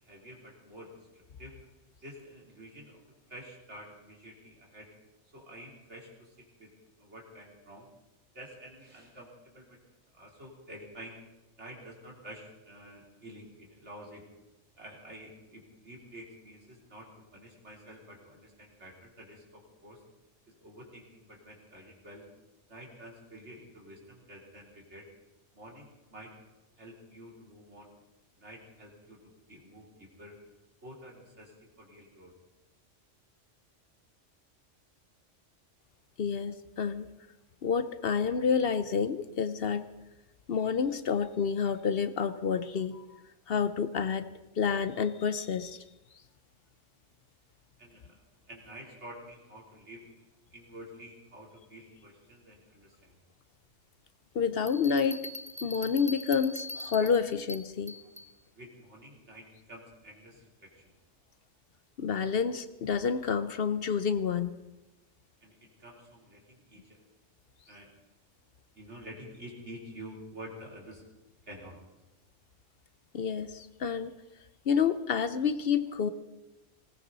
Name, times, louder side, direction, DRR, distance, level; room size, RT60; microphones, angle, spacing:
voice 1, 0.0-1.5 2.0-3.0 3.3-4.9 5.3-6.7 7.0-7.9 8.3-9.8 10.1-11.1 11.6-14.2 14.7-20.0 20.6-22.3 22.7-25.1 25.5-26.3 26.8-27.9 28.4-30.4 30.8-32.3 47.8-48.2 48.5-50.1 50.5-53.2 58.6-60.9 65.4-67.0 67.7-67.9 68.7-71.0 71.5-71.8, equal, 65° right, -2 dB, 3.7 m, -49 dB
voice 2, 36.2-37.1 37.6-39.8 40.5-43.0 43.5-44.3 44.6-45.8 54.3-55.3 55.6-58.0 62.0-64.6 73.1-74.2 74.7-76.1, left 6 dB, 60° left, 12 dB, 0.8 m, -29 dB
Bell, 54.7-58.3, left 1 dB, 10° left, 0.6 m, -43 dB
19.5 x 18.0 x 4.0 m, 1.0 s
omnidirectional pair, 1.2 m